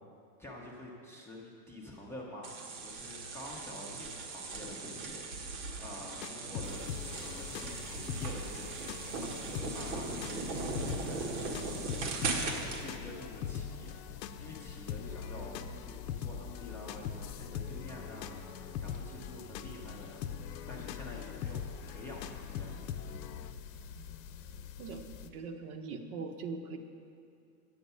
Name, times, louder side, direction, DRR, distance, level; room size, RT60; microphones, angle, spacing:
voice 1, 0.4-6.9 7.2-12.1 12.8-14.0 14.4-15.6 15.8-22.9, left 1 dB, 5° left, -5 dB, 0.5 m, -48 dB
sound 1, 2.4-12.8, right 3 dB, 90° right, 1.6 m, -39 dB
sound 2, 6.1-23.5, left 8 dB, 90° left, 0.7 m, -42 dB
sound 3, 6.6-25.3, left 8 dB, 55° left, 0.7 m, -49 dB
voice 2, 24.8-26.8, right 4 dB, 60° right, 6 dB, 1.0 m, -41 dB
9.1 x 8.0 x 5.4 m, 2.4 s
supercardioid pair, 145°, 49 cm